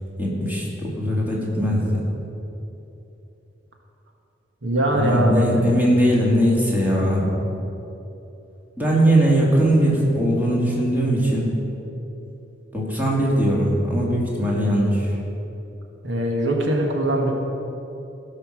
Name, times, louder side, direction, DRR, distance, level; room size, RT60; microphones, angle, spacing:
voice 1, 0.2-2.0 4.9-7.3 8.8-11.5 12.7-15.1, equal, 10° right, -5 dB, 2.3 m, -20 dB
voice 2, 4.6-5.5 16.0-17.3, right 1 dB, 85° right, 0 dB, 1.6 m, -21 dB
16.0 x 5.7 x 6.4 m, 2.9 s
head